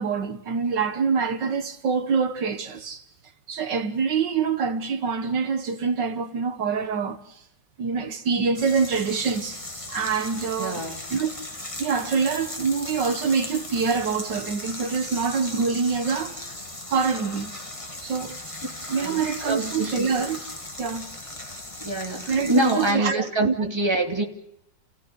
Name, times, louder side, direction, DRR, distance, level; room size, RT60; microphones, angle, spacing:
voice 1, 0.0-3.0 3.5-7.4 7.8-9.6 9.9-10.8 11.1-11.3 11.8-16.4 16.9-17.5 18.0-18.4 18.9-20.4 20.8-21.1 22.3-23.5, right 5 dB, 70° right, 1.9 m, -25 dB
sound 1, 8.5-22.9, left 1 dB, 15° left, 2.5 m, -37 dB
voice 2, 10.6-11.0 18.9-20.2 21.8-24.2, right 2 dB, 15° right, 2.7 m, -25 dB
30.0 x 16.5 x 9.7 m
omnidirectional pair, 2.0 m